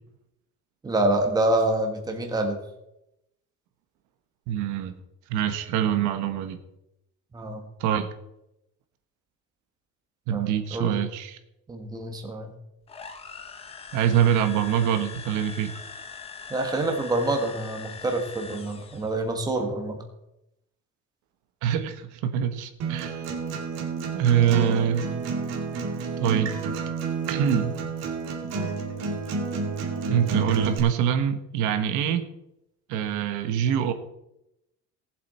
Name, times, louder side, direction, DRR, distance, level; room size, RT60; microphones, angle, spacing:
voice 1, 0.8-2.6 7.3-7.7 10.3-11.0 11.7-12.5 16.5-20.0, right 2 dB, 15° right, 3 dB, 1.5 m, -27 dB
voice 2, 4.5-4.9 5.3-6.6 7.8-8.1 10.3-11.4 13.9-15.7 21.6-23.2 24.1-25.1 26.2-26.5 27.3-27.7 30.1-32.3 32.9-33.9, right 9 dB, 85° right, 7 dB, 1.3 m, -24 dB
sound 1, 12.9-19.2, left 5 dB, 20° left, 0.7 m, -42 dB
Acoustic guitar, 22.8-30.8, right 4 dB, 60° right, 2.4 m, -30 dB
18.5 x 7.7 x 4.3 m, 0.85 s
cardioid pair, 175°, 29 cm